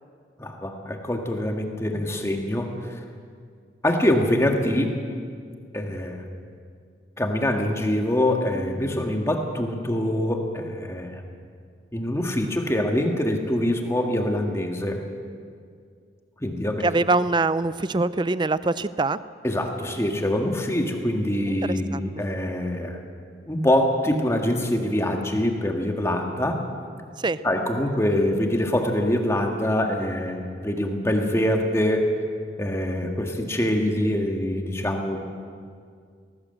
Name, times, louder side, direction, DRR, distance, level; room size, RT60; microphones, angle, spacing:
voice 1, 0.4-3.0 3.8-4.9 5.7-6.2 7.2-11.2 11.9-15.0 16.4-16.9 19.4-23.0 23.5-26.6 27.4-32.1 32.6-35.2, left 1 dB, 15° left, 3 dB, 1.8 m, -24 dB
voice 2, 16.8-19.2 21.5-21.6 21.9-22.0 27.2-27.4, right 3 dB, 25° right, 16 dB, 0.5 m, -23 dB
20.0 x 18.0 x 7.8 m, 2.1 s
head